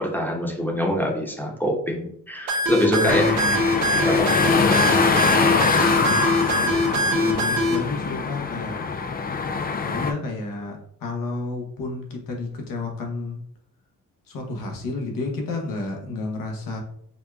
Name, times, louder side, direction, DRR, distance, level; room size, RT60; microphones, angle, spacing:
voice 1, 0.0-3.3 4.0-4.9 6.5-6.6, equal, 5° left, -1 dB, 1.0 m, -25 dB
sound 1, 2.5-7.8, equal, 85° right, 0.8 m, -22 dB
voice 2, 2.8-3.9 6.0-8.8 9.8-13.4 14.3-16.8, left 2 dB, 70° left, 1 dB, 1.0 m, -31 dB
sound 2, 3.1-10.1, left 5 dB, 30° left, 0.4 m, -23 dB
5.3 x 2.2 x 2.3 m, 0.68 s
supercardioid pair, 60°, 34 cm